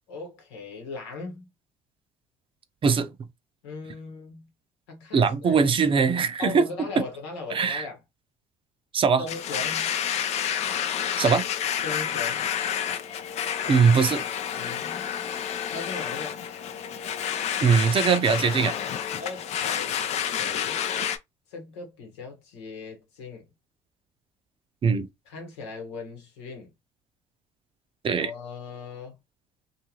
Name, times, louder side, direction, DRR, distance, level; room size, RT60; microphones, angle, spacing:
voice 1, 0.1-1.5 3.6-4.5 4.9-5.9 6.4-8.0 9.2-10.0 11.8-12.5 14.5-15.3 15.7-16.4 19.2-20.8 21.5-23.4 25.2-26.7 28.1-29.2, left 4 dB, 90° left, 1.1 m, -39 dB
voice 2, 5.1-6.6 7.5-7.8 8.9-9.2 11.2-11.4 13.7-14.2 17.6-18.7 24.8-25.1 28.0-28.3, right 5 dB, 40° right, 0.6 m, -21 dB
Domestic sounds home sounds, 9.3-21.2, left 9 dB, 55° left, 0.5 m, -29 dB
2.6 x 2.4 x 2.9 m
hypercardioid pair, 65°, 13 cm